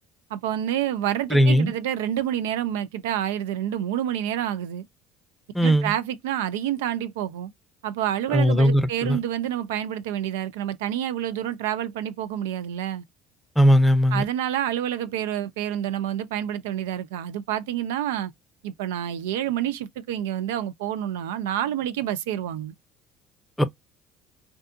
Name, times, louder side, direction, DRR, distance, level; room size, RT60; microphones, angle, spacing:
voice 1, 0.3-4.8 5.6-7.5 7.8-13.0 14.1-18.3 18.6-22.7, right 11 dB, 90° right, 0.3 m, -28 dB
voice 2, 1.3-1.7 5.5-5.9 8.3-9.2 13.6-14.2 23.6-23.7, equal, 5° left, 0.6 m, -18 dB
2.5 x 2.2 x 2.5 m
supercardioid pair, 80°, 0 cm